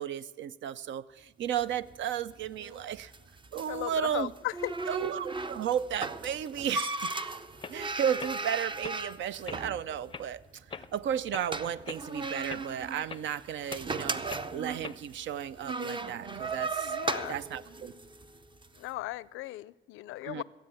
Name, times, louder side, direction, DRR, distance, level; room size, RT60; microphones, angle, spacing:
voice 1, 0.0-3.1 3.5-4.3 4.9-7.1 7.7-10.4 10.7-14.2 14.5-17.0 17.3-17.9 20.2-20.4, right 9 dB, 70° right, 0.5 m, -34 dB
sound 1, 1.5-18.8, right 3 dB, 25° right, 0.6 m, -38 dB
voice 2, 3.7-4.7 16.8-17.4 18.8-20.4, left 17 dB, 90° left, 0.4 m, -37 dB
sound 2, 7.1-7.2 7.6-7.8 8.2-8.4 8.8-9.0 9.4-9.6 10.1-10.3 10.7-10.9 11.3-11.5 11.8-12.0 12.5-12.7 13.1-13.2 13.7-13.9 14.3-14.5 14.8-15.0, left 5 dB, 25° left, 0.5 m, -42 dB
16.0 x 7.8 x 6.9 m
cardioid pair, 90°, 20 cm